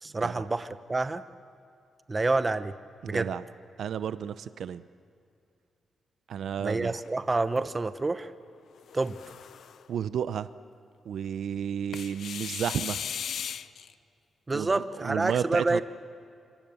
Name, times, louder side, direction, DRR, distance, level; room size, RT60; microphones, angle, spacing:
voice 1, 0.0-1.2 2.1-2.7 3.1-3.3 6.6-8.3 8.9-9.2 14.5-15.8, right 3 dB, 25° right, 11 dB, 1.0 m, -28 dB
voice 2, 3.0-3.4 3.8-4.8 6.3-7.0 9.9-10.5 11.1-13.0 14.5-15.8, right 8 dB, 75° right, 13 dB, 0.7 m, -32 dB
sound 1, 6.8-7.7 8.8-9.9 11.9-13.9, left 8 dB, 70° left, 0.7 m, -37 dB
27.0 x 25.5 x 7.1 m, 2.5 s
cardioid pair, 110°, 0 cm